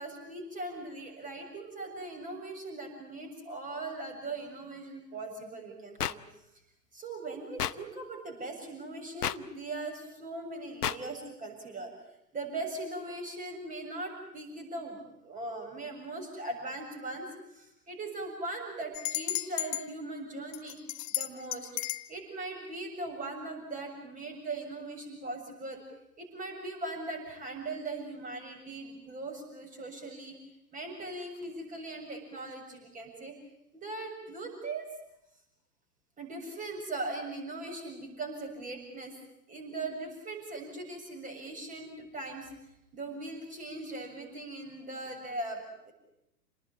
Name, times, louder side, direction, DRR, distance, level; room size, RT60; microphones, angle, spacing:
voice 1, 0.0-6.2 6.9-11.9 12.3-17.3 17.5-20.8 21.1-21.7 22.1-25.8 26.2-30.4 30.7-33.3 33.7-34.9 36.2-39.2 39.5-42.5 42.9-45.9, right 2 dB, 15° right, 3 dB, 7.1 m, -40 dB
sound 1, 6.0-6.1 7.6-7.7 9.2-9.4 10.8-11.0, left 10 dB, 65° left, 1.0 m, -30 dB
sound 2, 18.9-19.9 20.5-22.1, left 17 dB, 30° left, 1.0 m, -33 dB
28.5 x 19.0 x 8.4 m, 0.84 s
figure-of-eight pair, 115°, 49 cm